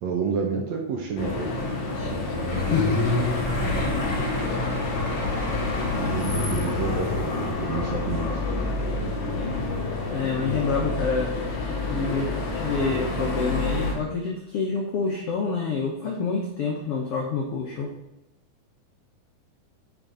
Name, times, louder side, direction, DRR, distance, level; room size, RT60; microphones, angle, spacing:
voice 1, 0.0-1.5 2.1-2.2 5.9-8.6, right 5 dB, 65° right, 0 dB, 1.9 m, -30 dB
sound 1, 1.2-13.9, left 2 dB, 60° left, 2.9 m, -27 dB
sound 2, 2.5-6.4 7.2-7.3 7.7-7.8, left 1 dB, 20° left, 1.7 m, -31 dB
voice 2, 10.1-11.4 11.9-17.9, left 5 dB, 80° left, 0 dB, 1.3 m, -27 dB
8.7 x 4.5 x 3.9 m, 0.91 s
omnidirectional pair, 4.0 m